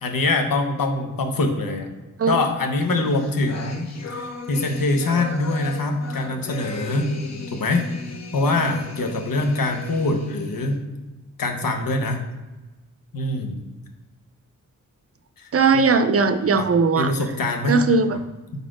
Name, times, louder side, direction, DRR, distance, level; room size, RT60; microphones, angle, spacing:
voice 1, 0.0-1.9 2.3-7.1 7.5-7.8 8.3-10.8 11.4-12.2 13.1-13.6 15.4-15.5 16.6-16.7 17.0-17.8, left 2 dB, 90° left, 5 dB, 1.0 m, -24 dB
sound 1, 2.9-10.8, left 4 dB, 50° left, 0.9 m, -37 dB
voice 2, 15.5-17.1 17.7-18.2, right 4 dB, 45° right, 10 dB, 0.5 m, -19 dB
5.2 x 4.1 x 4.9 m, 1.1 s
wide cardioid pair, 100°, 33 cm